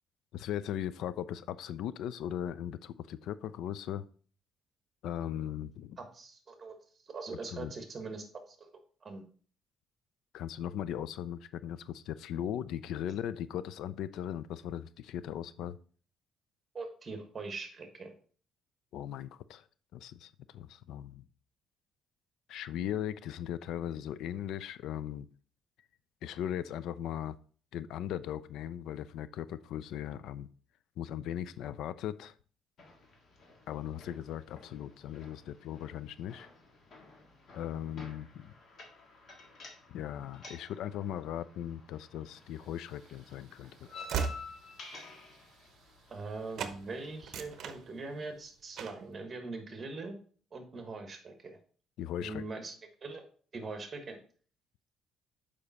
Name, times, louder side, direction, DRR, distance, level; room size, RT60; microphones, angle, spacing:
voice 1, 0.3-4.0 5.0-6.0 7.5-7.7 10.3-15.8 18.9-19.6 19.9-21.2 22.5-25.3 26.2-27.4 27.7-30.5 31.0-32.3 33.7-36.5 37.5-38.5 39.9-43.9 52.0-52.4, left 10 dB, 75° left, 0.3 m, -38 dB
voice 2, 6.0-6.8 7.1-8.7 9.0-9.2 16.7-18.1 46.1-50.1 50.5-51.6 52.2-52.7 53.0-53.2 53.5-54.2, right 3 dB, 25° right, 1.3 m, -42 dB
sound 1, 32.8-47.8, left 3 dB, 45° left, 1.7 m, -53 dB
Train / Slam, 42.7-46.3 46.6-46.8 47.2-48.4 48.8-49.1, right 6 dB, 60° right, 0.7 m, -39 dB
6.8 x 5.1 x 4.2 m
cardioid pair, 150°, 0 cm